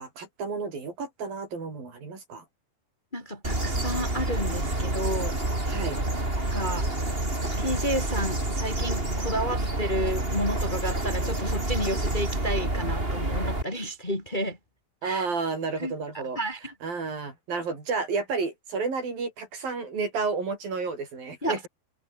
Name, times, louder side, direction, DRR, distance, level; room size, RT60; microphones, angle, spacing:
voice 1, 0.0-2.4 5.7-6.0 15.0-16.4 16.8-21.7, right 4 dB, 65° right, 8.1 m, -31 dB
voice 2, 3.1-5.3 6.4-6.9 7.6-14.6 15.0-15.3 15.8-16.6 21.4-21.7, equal, 15° left, 3.4 m, -31 dB
sound 1, 3.4-13.6, right 1 dB, 15° right, 5.3 m, -28 dB
omnidirectional pair, 4.3 m